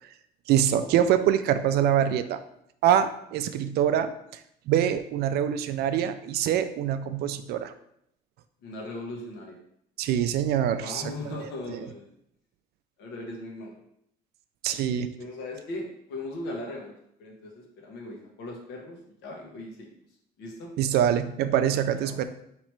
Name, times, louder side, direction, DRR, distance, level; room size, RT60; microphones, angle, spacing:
voice 1, 0.5-2.4 2.8-4.1 4.7-7.7 10.0-11.8 14.6-15.1 20.8-22.2, right 10 dB, 70° right, 10 dB, 0.4 m, -24 dB
voice 2, 8.6-9.6 10.8-12.1 13.0-13.8 15.2-16.9 17.2-19.9 20.4-20.7 21.7-22.1, left 2 dB, 90° left, 0 dB, 1.1 m, -38 dB
3.1 x 2.9 x 4.5 m, 0.74 s
cardioid pair, 110°, 17 cm